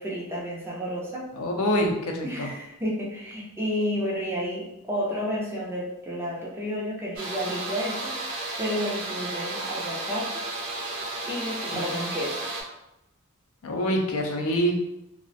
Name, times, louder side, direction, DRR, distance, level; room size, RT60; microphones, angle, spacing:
voice 1, 0.0-1.3 2.2-8.2 8.6-10.4 11.2-12.4, equal, 10° right, -4 dB, 0.4 m, -31 dB
voice 2, 1.4-2.5 11.9-12.0 13.6-14.8, equal, 80° left, 2 dB, 0.4 m, -25 dB
sound 1, 7.2-12.6, right 2 dB, 75° right, 0.6 m, -33 dB
2.4 x 2.1 x 2.5 m, 0.90 s
head